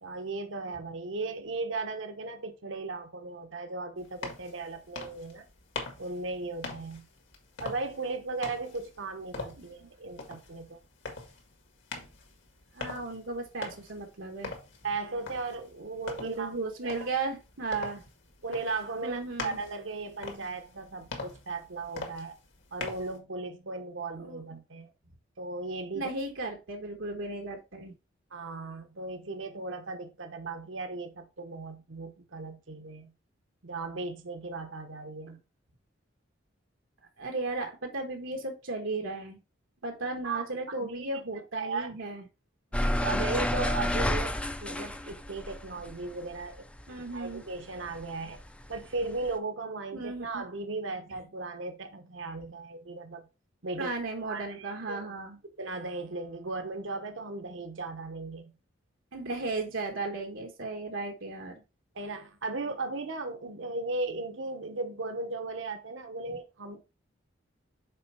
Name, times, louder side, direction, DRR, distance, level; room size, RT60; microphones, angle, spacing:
voice 1, 0.0-5.4 6.0-7.1 7.6-10.8 14.8-16.5 16.8-17.0 18.4-22.4 22.7-24.9 25.4-26.1 28.3-33.1 33.6-35.4 40.2-41.1 41.5-41.9 43.0-46.7 47.1-48.4 48.7-53.2 53.6-53.9 54.2-55.1 55.6-58.5 61.9-66.8, right 3 dB, 70° right, 0.9 m, -36 dB
sound 1, 4.0-23.2, left 3 dB, 65° left, 1.9 m, -43 dB
voice 2, 12.7-14.5 16.2-18.0 19.0-19.6 24.2-24.6 25.9-27.9 37.2-39.4 39.8-42.2 46.9-47.4 49.9-50.4 53.8-55.4 59.1-61.6, right 3 dB, 90° right, 1.3 m, -35 dB
sound 2, 42.7-47.4 47.7-49.3, left 1 dB, 5° left, 0.4 m, -30 dB
6.8 x 4.4 x 4.3 m
head